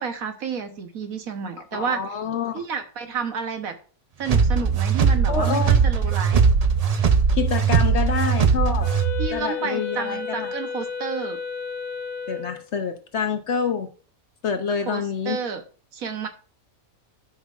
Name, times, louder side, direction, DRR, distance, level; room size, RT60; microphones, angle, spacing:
voice 1, 0.0-2.0 2.5-3.7 4.2-6.4 9.2-11.4 14.9-15.6 15.9-16.3, right 6 dB, 70° right, 1.4 m, -30 dB
voice 2, 1.7-2.5 5.3-5.7 7.3-8.9 9.3-10.5 12.3-13.9 14.4-15.4, left 6 dB, 55° left, 0.9 m, -27 dB
sound 1, 4.3-9.3, right 6 dB, 85° right, 0.3 m, -19 dB
Wind instrument woodwind instrument, 8.8-12.6, left 6 dB, 85° left, 1.5 m, -32 dB
12.0 x 5.6 x 2.4 m
omnidirectional pair, 1.6 m